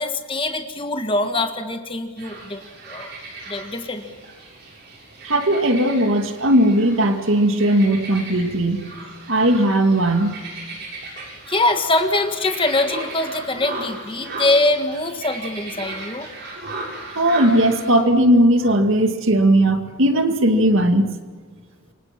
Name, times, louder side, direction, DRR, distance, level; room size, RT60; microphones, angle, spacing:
voice 1, 0.0-2.6 2.9-3.1 3.5-4.1 11.5-16.3 16.6-16.7, left 2 dB, 25° left, 7 dB, 1.6 m, -23 dB
sound 1, 2.2-18.0, right 2 dB, 50° right, 7.7 m, -36 dB
voice 2, 5.2-8.9 9.3-10.3 17.2-21.1, right 1 dB, 65° right, 6 dB, 2.2 m, -17 dB
27.5 x 24.5 x 6.0 m, 1.4 s
head